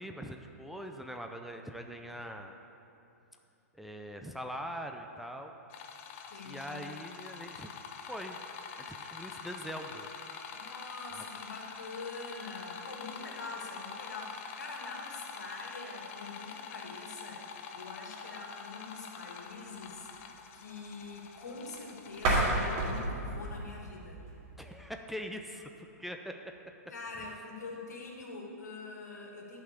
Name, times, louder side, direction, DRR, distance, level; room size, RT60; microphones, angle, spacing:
voice 1, 0.0-2.5 3.7-5.5 6.4-7.7 8.1-8.4 8.8-10.1 11.1-11.2 24.6-26.5, equal, ahead, 4 dB, 0.5 m, -42 dB
sound 1, 5.7-23.1, left 6 dB, 50° left, 0.9 m, -46 dB
voice 2, 6.3-7.0 10.5-17.4 17.7-20.1 20.5-24.2 26.9-29.6, left 3 dB, 85° left, -1 dB, 2.2 m, -44 dB
sound 2, 22.1-25.0, right 2 dB, 40° right, 2.8 m, -32 dB
11.5 x 5.9 x 6.9 m, 2.8 s
hypercardioid pair, 130°, 9 cm